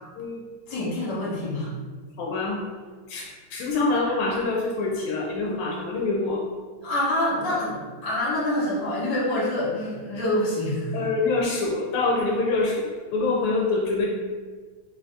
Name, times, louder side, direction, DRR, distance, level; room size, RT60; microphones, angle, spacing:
voice 1, 0.7-1.7 3.1-3.2 6.8-11.0, left 1 dB, 55° left, -6 dB, 1.7 m, -26 dB
voice 2, 2.2-2.6 3.1-3.2 3.5-6.4 10.9-14.1, left 3 dB, 85° left, -2 dB, 1.5 m, -25 dB
3.8 x 2.7 x 3.2 m, 1.5 s
omnidirectional pair, 2.4 m